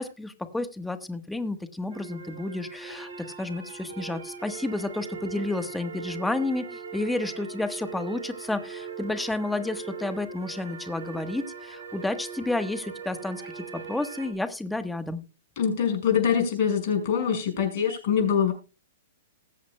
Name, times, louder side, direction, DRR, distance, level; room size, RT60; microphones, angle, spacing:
voice 1, 0.0-15.2, left 2 dB, 5° left, 8 dB, 1.3 m, -31 dB
sound 1, 1.9-14.3, right 6 dB, 70° right, 3.7 m, -40 dB
voice 2, 15.6-18.5, left 7 dB, 50° left, 4 dB, 5.7 m, -24 dB
20.5 x 8.1 x 2.2 m, 0.31 s
hypercardioid pair, 125°, 0 cm